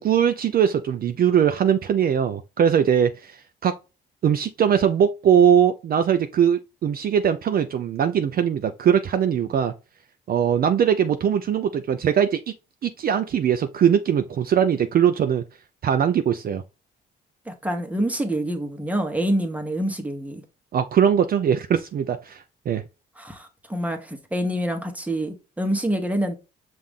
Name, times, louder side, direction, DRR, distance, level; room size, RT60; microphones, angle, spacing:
voice 1, 0.0-3.7 4.2-9.7 10.3-12.4 12.8-15.4 15.8-16.6 20.7-22.8, right 8 dB, 50° right, 0.4 m, -21 dB
voice 2, 17.5-20.4 23.2-26.4, right 1 dB, 5° right, 1.0 m, -26 dB
5.7 x 2.6 x 3.5 m
cardioid pair, 90°, 20 cm